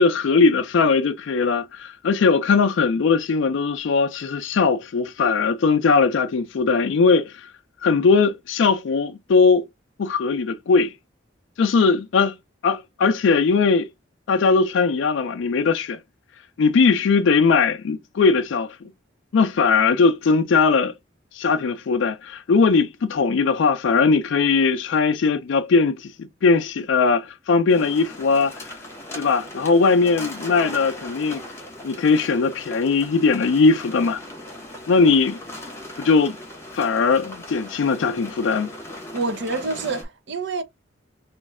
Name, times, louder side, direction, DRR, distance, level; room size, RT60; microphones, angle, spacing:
voice 1, 0.0-7.5 7.8-9.6 10.0-10.9 11.6-12.3 12.6-13.9 14.3-16.0 16.6-18.8 19.3-20.9 21.3-26.1 26.4-28.6 29.2-31.4 31.8-34.2 34.9-35.4 36.0-36.4 36.7-38.7, left 4 dB, 70° left, 0.4 m, -19 dB
sound 1, 27.7-40.0, left 1 dB, 15° left, 1.0 m, -38 dB
voice 2, 39.1-40.6, right 3 dB, 60° right, 0.6 m, -27 dB
3.1 x 2.5 x 3.5 m
head